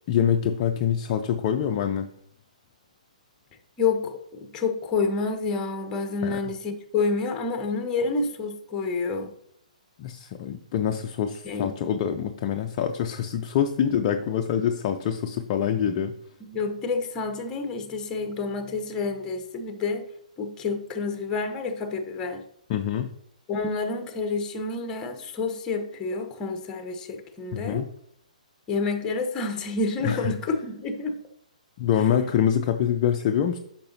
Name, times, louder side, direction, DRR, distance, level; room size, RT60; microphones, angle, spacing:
voice 1, 0.1-2.1 6.2-6.4 10.0-16.2 22.7-23.1 27.5-27.9 30.0-30.3 31.8-33.6, left 9 dB, 35° left, 5 dB, 0.5 m, -25 dB
voice 2, 3.8-9.3 11.4-11.7 16.4-20.0 20.4-22.4 23.5-27.8 28.7-31.2, left 4 dB, 20° left, 6 dB, 1.0 m, -28 dB
10.0 x 5.9 x 2.8 m, 0.69 s
figure-of-eight pair, 125°, 4 cm